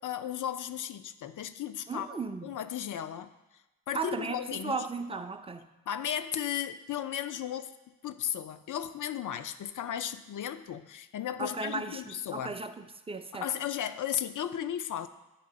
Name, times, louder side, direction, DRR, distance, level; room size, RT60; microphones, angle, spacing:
voice 1, 0.0-2.1 2.4-3.3 3.9-4.9 5.9-7.7 8.0-12.6 13.3-15.1, left 10 dB, 55° left, 11 dB, 0.5 m, -35 dB
voice 2, 1.9-2.5 3.9-5.7 11.4-13.5, right 4 dB, 15° right, 8 dB, 0.4 m, -36 dB
9.2 x 3.2 x 3.8 m, 1.1 s
supercardioid pair, 45°, 38 cm